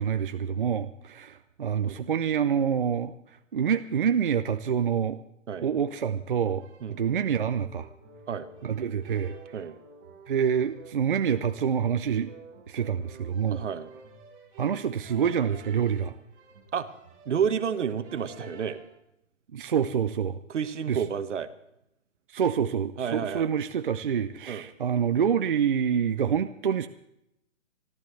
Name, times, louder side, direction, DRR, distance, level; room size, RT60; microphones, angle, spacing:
voice 1, 0.0-3.1 3.5-5.2 5.6-6.6 7.0-7.9 8.6-9.3 10.3-12.3 12.7-13.6 14.6-16.1 19.5-20.4 20.9-21.0 22.3-26.9, right 8 dB, 45° right, 9 dB, 0.5 m, -26 dB
Fun in The Woods, 6.4-19.0, right 3 dB, 15° right, 1.2 m, -50 dB
voice 2, 13.5-13.9 16.7-16.9 17.2-18.8 20.5-21.5 23.0-23.5 24.5-24.6, right 7 dB, 70° right, 11 dB, 1.3 m, -30 dB
27.5 x 12.5 x 3.2 m, 0.81 s
hypercardioid pair, 170°, 38 cm